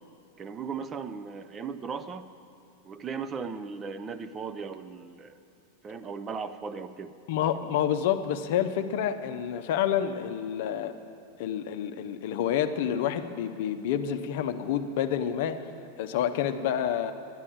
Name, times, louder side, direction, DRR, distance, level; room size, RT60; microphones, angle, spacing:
voice 1, 0.4-2.3 2.8-5.4 5.8-7.1, right 5 dB, 20° right, 11 dB, 0.5 m, -37 dB
voice 2, 7.3-10.9 11.4-15.6 16.0-17.1, left 9 dB, 50° left, 9 dB, 0.6 m, -28 dB
11.5 x 9.7 x 7.2 m, 2.5 s
figure-of-eight pair, 90°, 0 cm